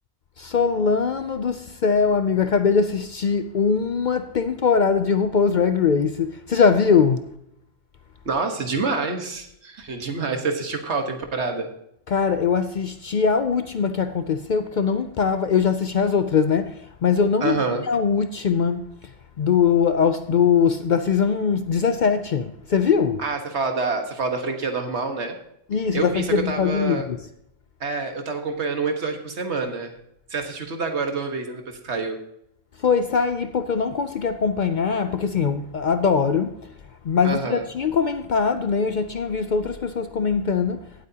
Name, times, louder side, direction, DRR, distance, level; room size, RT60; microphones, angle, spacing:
voice 1, 0.4-7.3 12.1-23.2 25.7-27.3 32.8-36.6 37.0-40.8, left 6 dB, 55° left, 0.6 m, -21 dB
voice 2, 8.2-11.7 17.4-17.9 23.2-25.4 25.9-27.1 27.8-30.0 30.3-32.2 37.2-37.6, right 4 dB, 75° right, 1.7 m, -27 dB
17.0 x 8.4 x 2.8 m
omnidirectional pair, 1.2 m